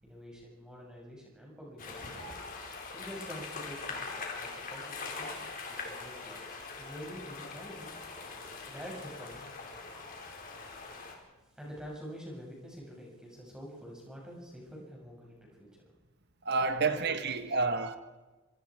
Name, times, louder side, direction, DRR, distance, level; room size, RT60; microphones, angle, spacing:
voice 1, 0.0-2.3 2.9-7.9 8.7-9.4 11.5-15.8 16.8-17.0, equal, 5° right, -3 dB, 6.6 m, -47 dB
sound 1, 1.8-11.1, left 4 dB, 40° left, 4.2 m, -42 dB
voice 2, 16.4-18.0, right 4 dB, 50° right, 9 dB, 1.3 m, -30 dB
26.5 x 24.5 x 4.9 m, 1.2 s
head